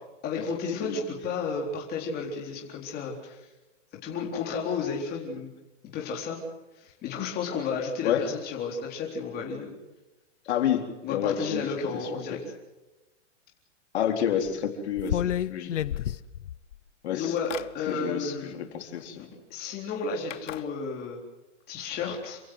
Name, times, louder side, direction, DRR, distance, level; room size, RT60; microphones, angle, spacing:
voice 1, 0.2-3.5 4.0-5.5 5.9-6.4 6.8-9.8 11.0-12.4 17.1-18.6 19.1-21.2 21.7-22.4, left 5 dB, 25° left, -1 dB, 4.1 m, -32 dB
voice 2, 10.5-11.6 11.9-12.1 13.9-16.0 17.0-17.3 17.9-19.2, left 9 dB, 65° left, 4 dB, 4.0 m, -29 dB
sound 1, 14.5-14.6 15.0-16.7 17.2-17.7 19.0-19.1 20.3-20.6, left 11 dB, 80° left, 1.0 m, -30 dB
28.0 x 16.0 x 8.0 m, 1.1 s
hypercardioid pair, 145°, 36 cm